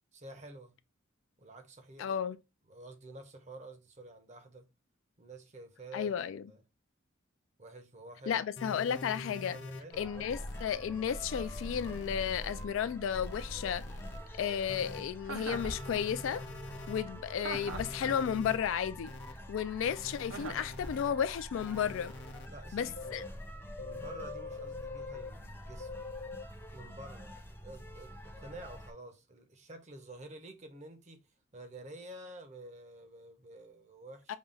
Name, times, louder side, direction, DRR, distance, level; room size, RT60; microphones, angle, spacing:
voice 1, 0.1-0.8 1.4-2.1 2.7-4.7 5.2-6.2 6.5-6.6 7.6-8.4 9.5-10.3 22.5-23.3 23.8-25.9 26.7-31.2 31.5-34.4, right 2 dB, 35° right, 0.7 m, -49 dB
voice 2, 2.0-2.4 5.9-6.4 8.3-9.6 10.0-13.8 14.4-16.4 16.9-19.1 19.5-22.1 22.7-23.2 34.3-34.4, left 8 dB, 75° left, 0.3 m, -33 dB
sound 1, 8.6-9.8 10.3-10.6 11.1-12.6 13.1-14.2 14.7-15.0 15.5-17.0 17.5-18.6 19.1-19.3 19.8-21.1 21.6-22.5 23.0-23.3 23.8-25.3 25.8-26.4, left 2 dB, 55° left, 0.7 m, -44 dB
sound 2, 9.9-28.9, equal, 10° left, 0.6 m, -47 dB
Chuckle chortle, 15.2-15.8 17.4-18.0 20.3-20.7, right 4 dB, 85° right, 0.6 m, -41 dB
5.3 x 2.3 x 3.7 m
head